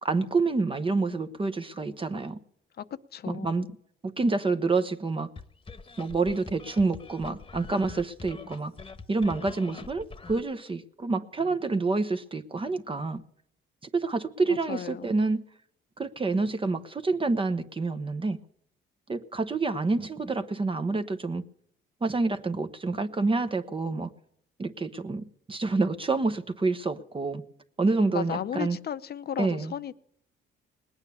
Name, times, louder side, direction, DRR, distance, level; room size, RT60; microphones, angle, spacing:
voice 1, 0.0-2.4 3.3-3.7 4.0-5.3 6.0-8.7 9.1-13.2 13.9-15.4 16.0-18.4 19.1-21.4 22.0-24.1 24.6-27.4 27.8-28.8 29.4-29.7, right 3 dB, 25° right, 9 dB, 0.9 m, -28 dB
voice 2, 3.1-3.5 14.5-15.1 28.0-29.9, left 9 dB, 55° left, 13 dB, 0.8 m, -34 dB
sound 1, 5.4-10.4, left 4 dB, 25° left, 1.2 m, -44 dB
19.5 x 9.0 x 6.9 m, 0.70 s
cardioid pair, 90°, 20 cm